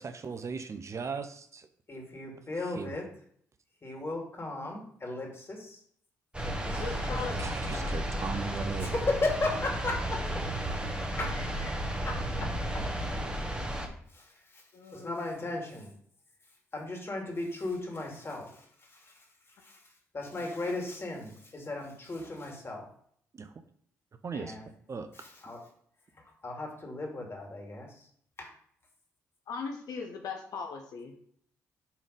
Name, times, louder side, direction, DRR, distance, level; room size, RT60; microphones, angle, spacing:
voice 1, 0.0-1.7 2.7-3.0 6.7-8.9 23.3-23.5 24.2-24.6 24.9-25.1, right 5 dB, 45° right, 9 dB, 0.7 m, -38 dB
voice 2, 1.9-3.1 3.8-5.8 6.4-7.2 8.8-10.4 11.0-12.8 14.1-14.2 14.5-14.6 14.9-15.9 16.7-18.6 19.6-19.8 20.1-22.9 24.3-24.6 25.2-25.6 26.4-27.9 28.4-28.5, left 2 dB, 35° left, 0 dB, 2.6 m, -36 dB
sound 1, 6.3-13.9, right 1 dB, 15° right, 1.8 m, -33 dB
voice 3, 6.8-7.9 14.7-15.4 29.5-31.2, left 5 dB, 65° left, 2 dB, 1.0 m, -39 dB
7.2 x 4.1 x 5.2 m, 0.63 s
hypercardioid pair, 45°, 7 cm